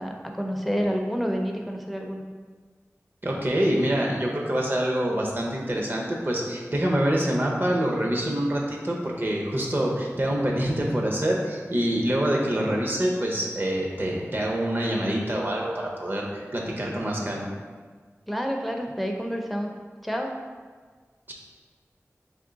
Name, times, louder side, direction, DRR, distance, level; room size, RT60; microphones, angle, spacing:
voice 1, 0.0-2.2 18.3-19.7 20.0-20.3, equal, ahead, 2 dB, 0.5 m, -29 dB
voice 2, 3.2-17.5, right 1 dB, 40° right, -2 dB, 0.8 m, -26 dB
3.5 x 3.1 x 3.9 m, 1.5 s
wide cardioid pair, 55°, 5 cm